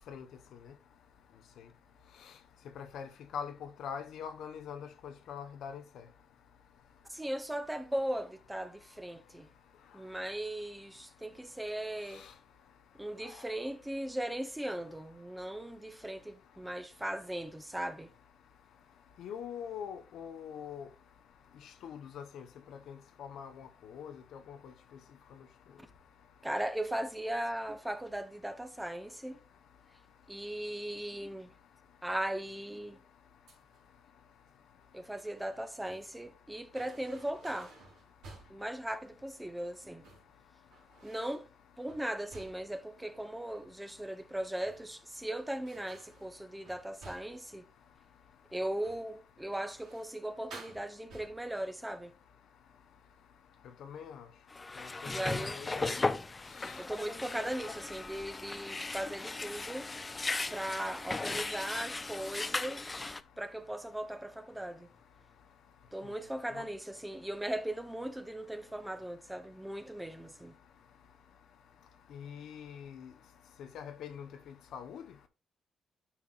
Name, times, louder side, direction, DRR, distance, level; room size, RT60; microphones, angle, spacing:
voice 1, 2.8-6.0 12.1-12.3 13.2-13.4 19.2-20.9 21.8-22.5 22.9-24.7 53.8-54.2 54.7-56.0 56.6-56.8 57.6-57.8 66.5-66.6 72.1-73.1 73.6-75.0, left 7 dB, 75° left, 0.9 m, -44 dB
voice 2, 7.1-9.5 9.9-12.3 13.0-18.1 26.4-29.4 30.3-31.5 32.0-33.0 34.9-37.7 38.5-40.0 41.0-41.5 41.8-47.6 48.5-52.1 55.1-55.6 56.8-59.9 60.5-64.9 65.9-70.5, right 1 dB, 10° right, 0.9 m, -38 dB
sound 1, 33.5-33.9 35.5-36.2 36.7-38.7 39.8-40.3 40.7-41.5 41.9-42.8 44.4-45.1 45.7-47.5 48.8-49.1 49.5-50.2 50.5-51.6, right 3 dB, 85° right, 3.6 m, -54 dB
sound 2, 54.5-63.2, left 3 dB, 25° left, 0.4 m, -37 dB
9.9 x 5.8 x 2.4 m
cardioid pair, 90°, 0 cm